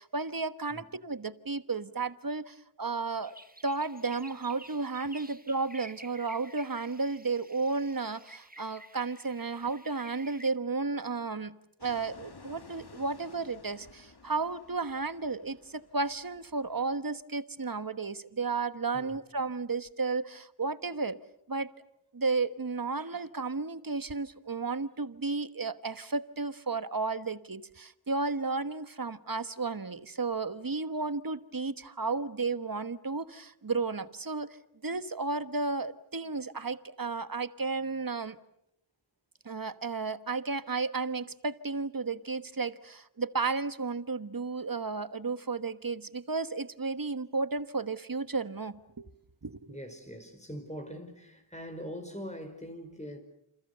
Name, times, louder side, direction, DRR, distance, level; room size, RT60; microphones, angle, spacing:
voice 1, 0.0-3.4 3.6-11.6 11.8-21.2 21.5-21.7 22.1-34.6 34.8-38.4 39.4-49.1 49.4-49.8, right 4 dB, 45° right, 1.3 m, -33 dB
sound 1, 3.2-10.5, right 1 dB, 15° right, 1.6 m, -52 dB
Fixed-wing aircraft airplane, 11.8-17.0, left 3 dB, 50° left, 1.9 m, -54 dB
voice 2, 49.7-53.2, equal, 15° left, 5.0 m, -42 dB
29.0 x 27.5 x 6.8 m
wide cardioid pair, 45°, 49 cm